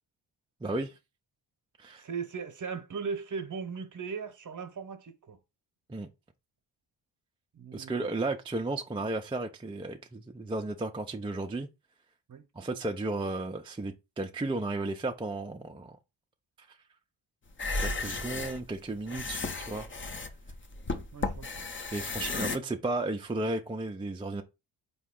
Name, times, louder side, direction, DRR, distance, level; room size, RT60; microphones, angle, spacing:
voice 1, 0.6-1.0 1.8-2.0 5.9-6.1 7.7-11.7 12.6-16.0 16.6-16.8 17.8-19.9 21.9-24.4, right 2 dB, 10° right, 0.4 m, -34 dB
voice 2, 2.0-5.4 7.5-8.1 12.3-12.4 19.1-19.2 21.1-21.7, right 5 dB, 40° right, 0.9 m, -38 dB
sound 1, 17.5-22.6, left 3 dB, 25° left, 0.6 m, -34 dB
4.0 x 2.9 x 3.7 m
cardioid pair, 60°, 47 cm